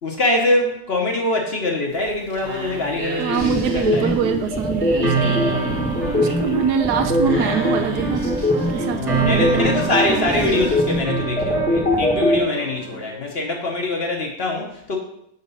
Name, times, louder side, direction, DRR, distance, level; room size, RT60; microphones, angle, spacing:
voice 1, 0.0-4.1 5.4-5.7 6.0-6.2 9.0-15.0, left 2 dB, 45° left, 1 dB, 1.0 m, -24 dB
sound 1, 1.9-11.0, right 2 dB, 65° right, 1.7 m, -34 dB
voice 2, 3.2-5.5 6.1-8.5 8.7-10.7, right 7 dB, 80° right, 6 dB, 1.3 m, -24 dB
sound 2, 3.4-12.4, left 2 dB, 5° left, 0.8 m, -21 dB
sound 3, 5.0-13.1, right 4 dB, 50° right, 1.4 m, -27 dB
6.4 x 4.1 x 5.4 m, 0.76 s
omnidirectional pair, 1.7 m